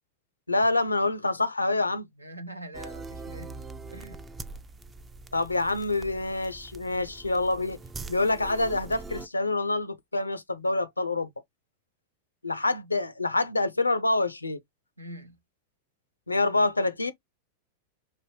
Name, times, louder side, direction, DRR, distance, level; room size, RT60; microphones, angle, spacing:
voice 1, 0.5-2.1 5.3-7.8 8.1-11.3 12.4-14.6 16.3-17.1, left 2 dB, 80° left, 0.5 m, -26 dB
voice 2, 2.1-3.6 3.9-4.2 15.0-15.4, right 1 dB, 85° right, 0.7 m, -43 dB
sound 1, 2.7-9.3, right 3 dB, 15° right, 0.4 m, -42 dB
4.7 x 2.6 x 3.0 m
figure-of-eight pair, 90°, 0 cm